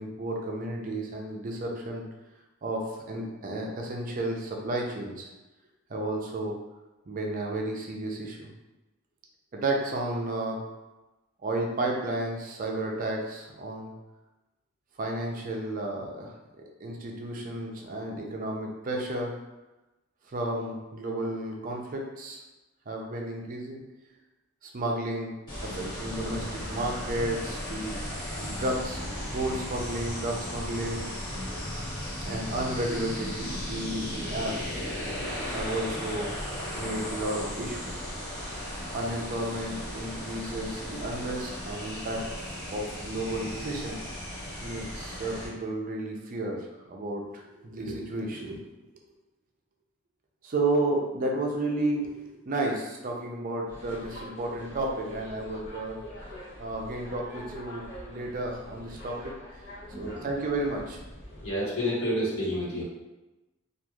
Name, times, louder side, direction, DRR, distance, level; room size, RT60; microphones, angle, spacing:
voice 1, 0.0-2.1 2.6-5.3 5.9-6.5 7.1-8.5 9.5-10.6 11.4-13.9 15.0-16.3 16.8-19.4 20.3-22.4 22.9-23.8 24.6-25.3 25.6-28.0 28.4-31.5 32.3-34.8 35.5-36.3 36.7-37.9 38.9-42.3 42.7-44.0 44.6-48.6 50.4-56.0 56.6-59.3 60.0-61.0, right 1 dB, 40° right, 0 dB, 0.4 m, -32 dB
sound 1, 25.5-45.5, left 1 dB, 25° left, 1.3 m, -36 dB
sound 2, 53.7-61.5, left 1 dB, 50° left, 0.8 m, -45 dB
voice 2, 59.9-60.3 61.4-62.8, equal, 75° left, -7 dB, 1.2 m, -29 dB
3.0 x 2.4 x 2.3 m, 1.1 s
head